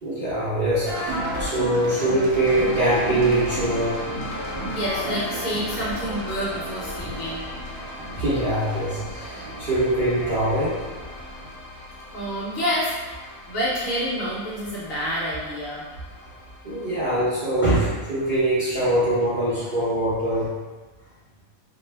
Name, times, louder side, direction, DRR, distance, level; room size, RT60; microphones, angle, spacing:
voice 1, 0.0-4.1 8.1-10.8 16.6-20.5, right 1 dB, 50° right, -12 dB, 0.6 m, -23 dB
sound 1, 0.9-11.5, right 1 dB, 80° right, 1.2 m, -33 dB
sound 2, 2.4-16.9, left 2 dB, 90° left, 1.2 m, -39 dB
voice 2, 4.5-7.4 12.1-12.9 13.2-15.8, equal, 60° left, -7 dB, 1.2 m, -28 dB
2.8 x 2.1 x 3.2 m, 1.3 s
omnidirectional pair, 1.6 m